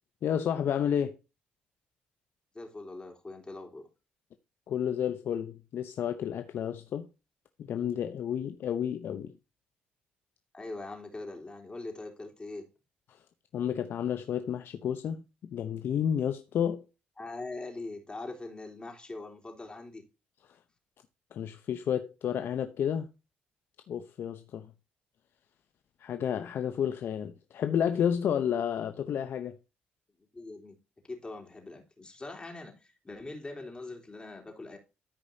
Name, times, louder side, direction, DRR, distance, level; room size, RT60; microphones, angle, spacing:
voice 1, 0.2-1.2 4.7-7.1 7.6-9.3 13.1-13.2 13.5-15.2 15.5-16.8 21.3-23.1 23.9-24.7 26.0-29.6, left 9 dB, 65° left, 0.8 m, -31 dB
voice 2, 2.5-3.9 10.5-12.7 17.2-20.0 30.3-30.8 31.1-34.8, left 2 dB, 25° left, 3.3 m, -42 dB
13.5 x 5.1 x 2.8 m
supercardioid pair, 75°, 4 cm